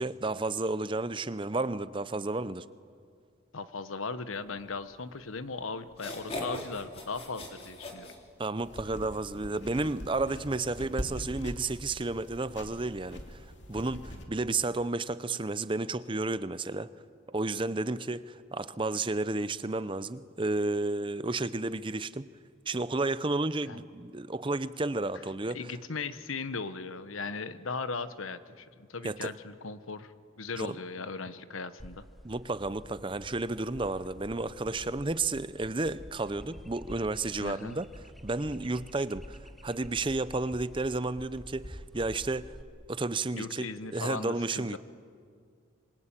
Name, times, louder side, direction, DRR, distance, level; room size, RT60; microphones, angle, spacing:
voice 1, 0.0-2.6 8.4-16.9 17.3-22.3 22.7-25.6 29.0-29.3 30.6-30.7 32.2-37.9 38.2-42.5 42.9-44.8, right 2 dB, 25° right, 0.6 m, -32 dB
voice 2, 3.5-8.1 23.6-23.8 25.5-32.0 37.4-37.8 43.3-44.8, left 4 dB, 85° left, 1.2 m, -38 dB
sound 1, 5.3-5.4 5.9-8.8, left 1 dB, 30° left, 3.6 m, -40 dB
sound 2, 8.6-14.2, equal, 60° left, 2.6 m, -42 dB
sound 3, 31.8-42.6, equal, ahead, 1.1 m, -49 dB
26.0 x 23.0 x 9.0 m
head